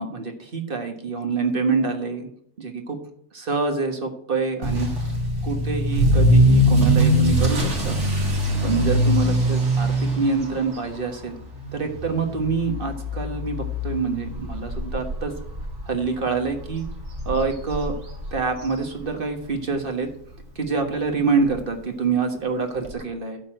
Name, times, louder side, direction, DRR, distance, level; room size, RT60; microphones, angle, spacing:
voice 1, 0.0-2.3 2.6-3.0 3.3-4.9 5.4-8.0 8.6-11.4 11.7-15.3 15.9-16.9 17.2-17.9 18.3-20.1 20.5-23.4, right 4 dB, 45° right, 4 dB, 1.5 m, -26 dB
Motor vehicle (road) / Accelerating revving vroom, 4.6-19.5 19.8-20.2 20.7-20.8 21.1-21.2 21.4-21.5 22.8-22.9, equal, 65° right, 2.4 m, -23 dB
12.0 x 4.2 x 7.7 m, 0.68 s
omnidirectional pair, 1.3 m